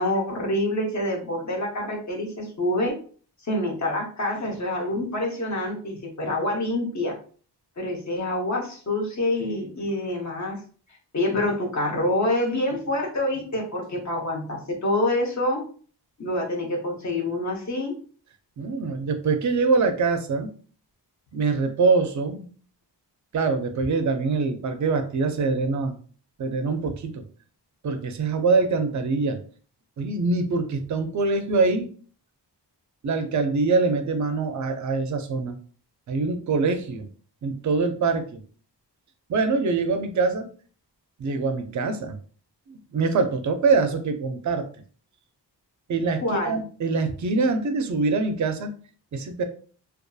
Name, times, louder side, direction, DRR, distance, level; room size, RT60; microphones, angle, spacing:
voice 1, 0.0-2.9 3.5-7.2 7.8-10.6 11.1-15.6 16.2-17.9 46.2-46.6, left 1 dB, 40° left, 0 dB, 0.7 m, -26 dB
voice 2, 18.6-20.5 21.3-22.5 23.3-25.9 26.4-27.2 27.8-29.4 30.0-31.9 33.0-35.6 36.1-37.1 37.4-38.4 39.3-40.5 41.2-42.2 42.7-44.7 45.9-48.7 49.1-49.4, right 4 dB, 45° right, 7 dB, 0.4 m, -24 dB
2.6 x 2.3 x 2.3 m, 0.43 s
wide cardioid pair, 120°, 43 cm